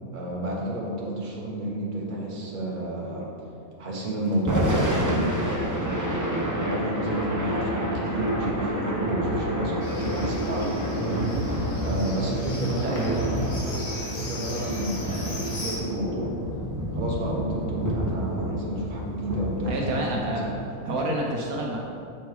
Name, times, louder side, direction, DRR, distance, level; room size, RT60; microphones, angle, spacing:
voice 1, 0.1-3.3 3.8-13.7 14.0-16.3 16.9-20.5, right 1 dB, 35° right, -3 dB, 1.3 m, -31 dB
Thunder / Rain, 4.3-20.6, equal, 20° right, 0.6 m, -29 dB
Livestock farm animals working animals, 9.8-15.8, left 2 dB, 70° left, 1.9 m, -38 dB
voice 2, 12.8-13.3 19.6-20.5 20.8-21.8, right 1 dB, 70° right, -1 dB, 1.3 m, -28 dB
7.3 x 5.4 x 4.7 m, 2.5 s
omnidirectional pair, 1.6 m